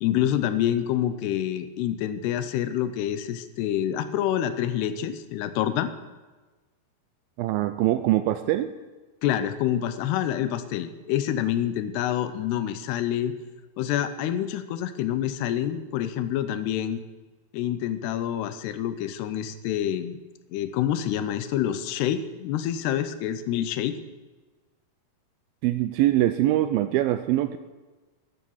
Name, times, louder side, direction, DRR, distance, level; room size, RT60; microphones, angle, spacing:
voice 1, 0.0-5.9 9.2-13.3 13.8-17.0 17.5-20.2 20.5-24.0, left 11 dB, 85° left, 12 dB, 2.9 m, -27 dB
voice 2, 7.4-8.7 25.6-27.6, right 14 dB, 85° right, 11 dB, 2.2 m, -23 dB
11.0 x 11.0 x 7.2 m, 1.2 s
omnidirectional pair, 4.6 m